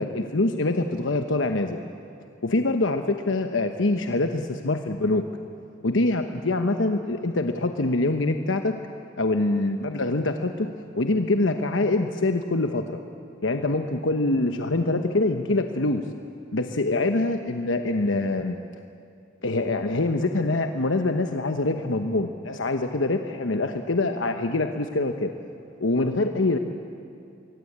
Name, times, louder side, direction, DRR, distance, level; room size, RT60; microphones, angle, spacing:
voice 1, 0.0-1.8 2.4-5.2 5.8-8.7 9.2-10.7 11.0-13.0 13.4-16.0 16.5-18.6 19.4-25.3 25.8-26.6, left 2 dB, 75° left, 6 dB, 1.1 m, -24 dB
25.5 x 23.0 x 8.7 m, 2.7 s
head